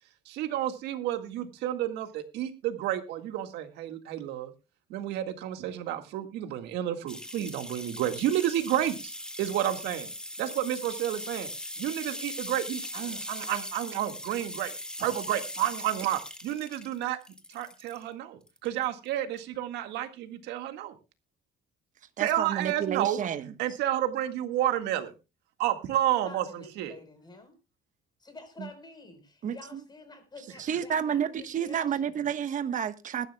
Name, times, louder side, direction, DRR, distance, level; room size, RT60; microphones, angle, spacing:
voice 1, 0.3-4.5 4.9-9.1 9.4-10.1 10.4-11.5 11.8-14.7 15.0-17.2 17.5-21.0 22.2-23.2 23.6-25.1 25.6-26.9, right 12 dB, 85° right, 1.8 m, -30 dB
sound 1, 7.1-18.0 18.5-19.1 19.4-19.5, left 1 dB, 5° left, 1.8 m, -40 dB
voice 2, 22.2-23.5 28.6-28.7 29.4-29.8 30.6-33.3, right 8 dB, 50° right, 1.2 m, -30 dB
voice 3, 26.2-27.6 28.2-32.2, left 2 dB, 25° left, 4.3 m, -49 dB
21.5 x 11.5 x 2.3 m
cardioid pair, 110°, 17 cm